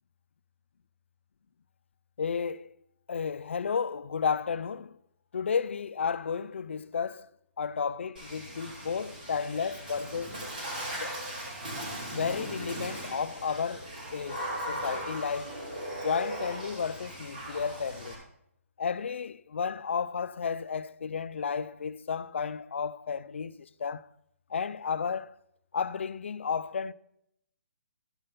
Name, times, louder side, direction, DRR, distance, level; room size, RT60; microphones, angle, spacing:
voice 1, 2.2-2.7 3.1-5.0 5.3-7.3 7.6-10.4 11.0-11.2 12.1-15.6 16.0-18.2 18.8-24.1 24.5-25.4 25.7-26.9, left 6 dB, 55° left, 0.4 m, -32 dB
Water / Splash splatter, 8.2-18.2, right 1 dB, 35° right, 3.6 m, -38 dB
13.5 x 5.7 x 5.1 m
hypercardioid pair, 175°, 8 cm